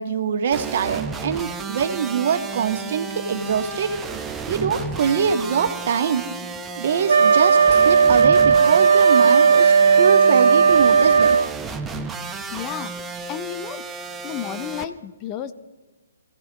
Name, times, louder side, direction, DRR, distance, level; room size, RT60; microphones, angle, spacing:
voice 1, 0.0-3.9 4.5-6.2 6.8-11.4, right 7 dB, 50° right, 6 dB, 1.4 m, -23 dB
sound 1, 0.5-14.8, right 4 dB, 10° right, 0.8 m, -33 dB
Wind instrument woodwind instrument, 7.1-11.5, right 6 dB, 65° right, 0.4 m, -15 dB
voice 2, 12.5-13.0 13.3-13.9 14.2-15.5, left 10 dB, 25° left, 11 dB, 0.6 m, -32 dB
25.0 x 15.5 x 3.0 m, 1.2 s
figure-of-eight pair, 130°, 0 cm